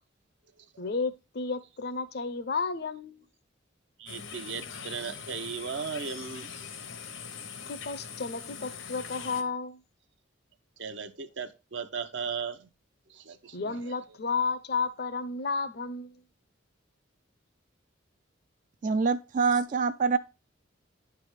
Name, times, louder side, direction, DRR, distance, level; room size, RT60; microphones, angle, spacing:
voice 1, 0.8-3.3 7.7-9.8 13.5-16.2, left 4 dB, 50° left, 0.6 m, -32 dB
voice 2, 4.0-6.5 10.8-12.7 13.1-14.0, right 6 dB, 65° right, 0.7 m, -37 dB
sound 1, 4.1-9.4, left 6 dB, 80° left, 1.0 m, -42 dB
voice 3, 18.8-20.2, right 5 dB, 40° right, 0.3 m, -25 dB
10.0 x 3.4 x 4.7 m
head